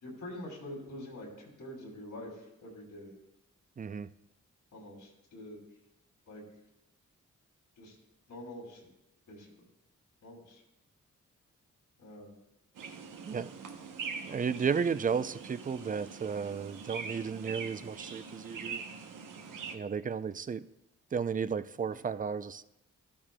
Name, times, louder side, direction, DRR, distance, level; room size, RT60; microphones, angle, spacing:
voice 1, 0.0-3.1 4.7-5.6 6.3-6.4 7.8-8.0 8.3-8.8 9.3-9.5 10.2-10.6 12.0-12.3 14.7-14.8 21.7-22.0, left 1 dB, 85° left, -2 dB, 2.8 m, -46 dB
voice 2, 3.8-4.1 13.2-13.5 14.2-18.8 19.7-20.6 21.1-22.6, right 6 dB, 25° right, 15 dB, 0.4 m, -33 dB
sound 1, 12.8-19.8, right 5 dB, 85° right, 0.9 m, -43 dB
13.5 x 8.7 x 2.2 m, 0.86 s
cardioid pair, 55°, 31 cm